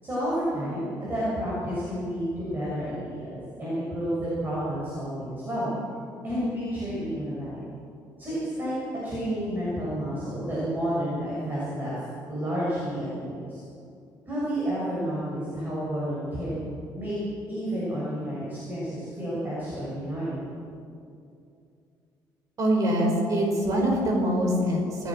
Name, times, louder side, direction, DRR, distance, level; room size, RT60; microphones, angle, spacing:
voice 1, 0.0-5.7 6.2-7.6 8.2-8.7 9.0-12.0 12.3-13.6 14.3-16.6 16.9-17.2 17.5-20.5, equal, 25° right, -8 dB, 7.2 m, -30 dB
voice 2, 22.6-25.1, equal, 45° right, 1 dB, 4.9 m, -24 dB
29.0 x 15.5 x 6.3 m, 2.5 s
cardioid pair, 160°, 8 cm